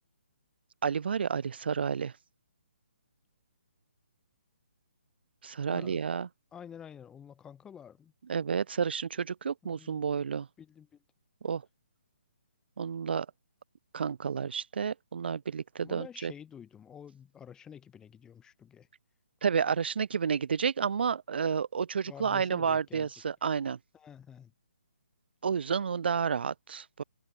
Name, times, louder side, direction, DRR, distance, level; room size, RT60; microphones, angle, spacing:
voice 1, 0.8-2.1 5.4-6.3 8.3-10.5 11.4-11.6 12.8-13.3 13.9-16.3 19.4-23.8 25.4-27.0, right 6 dB, 60° right, 0.5 m, -30 dB
voice 2, 6.5-8.1 9.6-10.0 10.6-11.0 15.8-18.9 22.1-23.1 23.9-24.5, left 8 dB, 10° left, 4.0 m, -49 dB
figure-of-eight pair, 140°, 6 cm